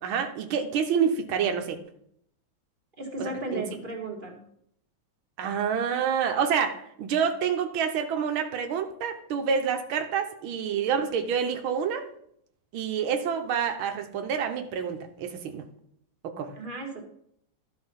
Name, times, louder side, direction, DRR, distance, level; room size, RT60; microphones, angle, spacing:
voice 1, 0.0-1.8 3.2-3.6 5.4-12.0 12.7-15.6 16.4-16.5, right 7 dB, 90° right, 6 dB, 1.7 m, -28 dB
voice 2, 3.0-4.4 16.5-17.0, right 2 dB, 25° right, 0 dB, 1.9 m, -35 dB
12.5 x 5.0 x 5.6 m, 0.70 s
omnidirectional pair, 2.2 m